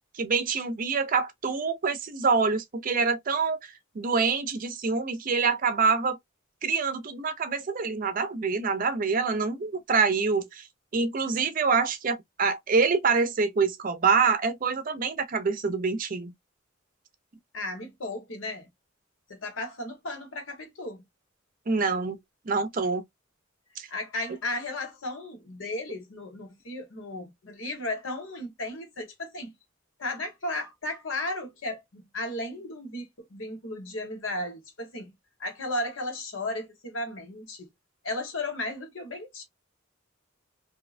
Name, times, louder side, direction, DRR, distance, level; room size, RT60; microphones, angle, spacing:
voice 1, 0.1-6.2 6.6-10.6 10.9-16.3 21.7-22.2 22.5-23.0 23.8-23.9, right 4 dB, 45° right, 0.5 m, -26 dB
voice 2, 17.5-18.7 19.3-21.0 23.9-29.5 30.0-35.1 35.4-37.7 38.0-39.4, left 1 dB, 80° left, 1.2 m, -35 dB
2.7 x 2.1 x 2.4 m
head